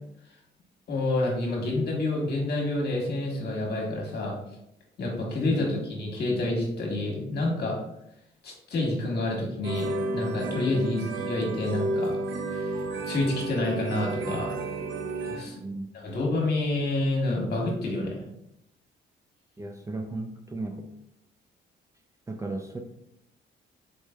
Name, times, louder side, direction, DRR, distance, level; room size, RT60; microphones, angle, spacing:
voice 1, 0.9-4.3 5.0-7.8 8.4-12.2 12.5-14.5 15.3-15.6 15.9-18.2, left 2 dB, 55° left, -1 dB, 1.3 m, -28 dB
voice 2, 5.5-5.9 15.6-15.9 19.6-20.9 22.3-22.8, right 2 dB, 15° right, 3 dB, 0.3 m, -35 dB
sound 1, 9.6-15.4, right 2 dB, 70° right, 0.5 m, -31 dB
4.1 x 3.2 x 2.2 m, 0.80 s
cardioid pair, 90°, 20 cm